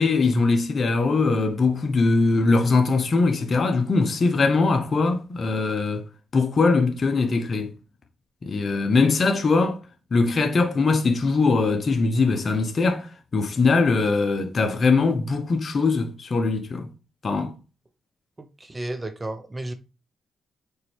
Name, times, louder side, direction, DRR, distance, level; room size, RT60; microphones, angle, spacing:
voice 1, 0.0-6.0 6.3-7.7 8.4-9.8 10.1-16.9 17.2-17.5, left 3 dB, 45° left, 1.0 m, -21 dB
voice 2, 18.4-19.7, right 1 dB, 25° right, 0.8 m, -33 dB
6.7 x 4.5 x 3.4 m
supercardioid pair, 65°, 0 cm